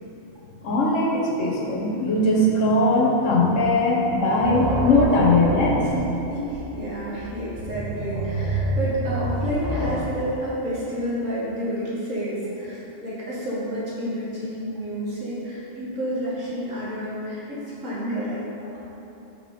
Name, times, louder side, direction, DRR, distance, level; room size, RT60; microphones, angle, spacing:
voice 1, 0.6-5.9, left 2 dB, 75° left, -2 dB, 1.3 m, -20 dB
sound 1, 3.3-3.8 4.1-10.0, right 1 dB, 40° right, 1.0 m, -28 dB
voice 2, 5.8-18.7, equal, 90° right, -8 dB, 2.2 m, -30 dB
5.8 x 4.5 x 5.7 m, 2.9 s
omnidirectional pair, 1.3 m